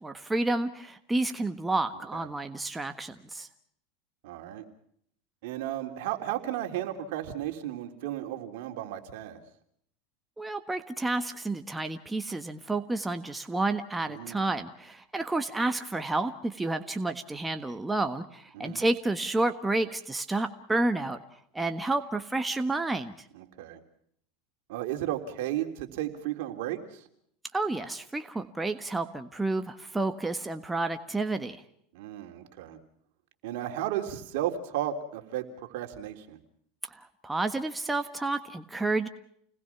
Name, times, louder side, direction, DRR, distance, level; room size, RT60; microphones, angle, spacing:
voice 1, 0.0-3.5 10.4-21.2 21.5-23.1 27.5-31.6 36.9-39.1, right 2 dB, 10° right, 7 dB, 1.4 m, -30 dB
voice 2, 4.2-4.6 5.4-9.4 14.1-14.4 18.5-18.8 23.3-23.8 24.7-26.8 31.9-32.8 33.4-36.4, right 12 dB, 70° right, 5 dB, 3.4 m, -34 dB
29.5 x 20.0 x 5.9 m, 0.68 s
supercardioid pair, 120°, 0 cm